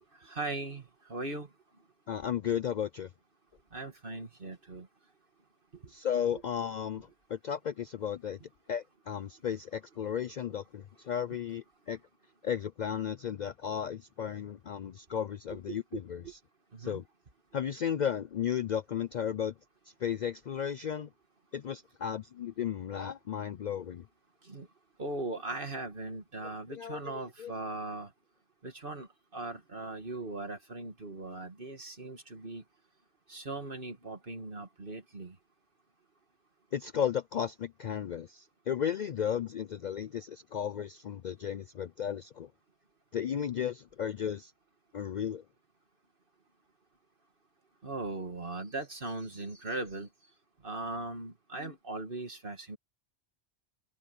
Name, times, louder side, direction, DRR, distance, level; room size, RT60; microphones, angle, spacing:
voice 1, 0.2-1.5 3.7-4.9 15.5-16.3 16.7-17.0 24.4-24.7 25.0-28.1 28.6-29.1 29.3-32.6 33.3-35.3 47.8-50.1 50.6-52.8, right 2 dB, 50° right, 2.4 m, -39 dB
voice 2, 2.1-3.1 5.9-8.4 8.7-12.0 12.4-16.2 16.8-17.0 17.5-19.5 20.0-21.1 21.5-24.0 26.7-27.5 36.7-42.5 43.1-44.5 44.9-45.4, left 8 dB, 55° left, 0.5 m, -34 dB
omnidirectional pair, 1.1 m